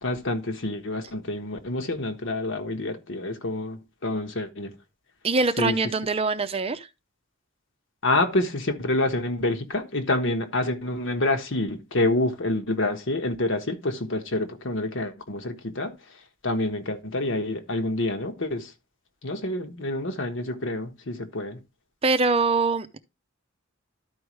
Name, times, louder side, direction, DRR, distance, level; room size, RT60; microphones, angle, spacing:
voice 1, 0.0-4.7 5.6-5.8 8.0-15.9 16.4-18.7 19.2-21.6, left 2 dB, 65° left, 1.3 m, -27 dB
voice 2, 5.2-6.9 22.0-23.0, right 3 dB, 30° right, 0.6 m, -23 dB
12.5 x 4.7 x 3.1 m
head